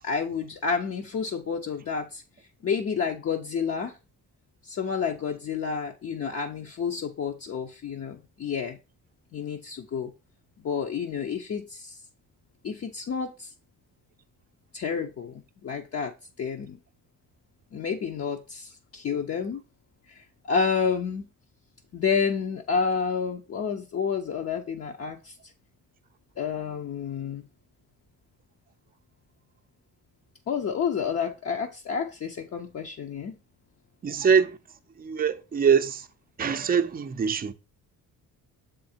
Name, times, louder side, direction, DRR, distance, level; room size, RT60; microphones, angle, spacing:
voice 1, 0.0-2.2 2.6-4.0 4.6-8.8 9.3-10.1 10.6-12.0 12.6-13.5 14.7-15.3 15.6-16.1 16.4-16.8 17.7-19.6 20.1-20.2 20.4-21.2 21.9-25.3 26.4-27.4 30.5-33.4, left 6 dB, 45° left, 0.7 m, -29 dB
voice 2, 34.0-34.6 35.0-36.1 36.4-37.5, right 6 dB, 25° right, 0.6 m, -23 dB
6.9 x 3.8 x 4.3 m
cardioid pair, 110°, 35 cm